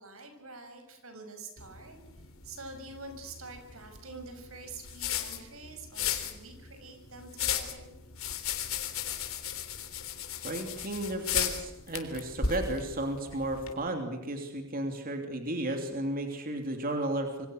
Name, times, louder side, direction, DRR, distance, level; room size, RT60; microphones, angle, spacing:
voice 1, 0.0-2.0 2.4-7.9, right 3 dB, 90° right, 6 dB, 6.5 m, -46 dB
sound 1, 1.6-13.7, left 8 dB, 80° left, 3.6 m, -36 dB
voice 2, 10.4-17.5, right 1 dB, 45° right, 4 dB, 3.1 m, -33 dB
27.5 x 24.5 x 6.5 m, 0.98 s
head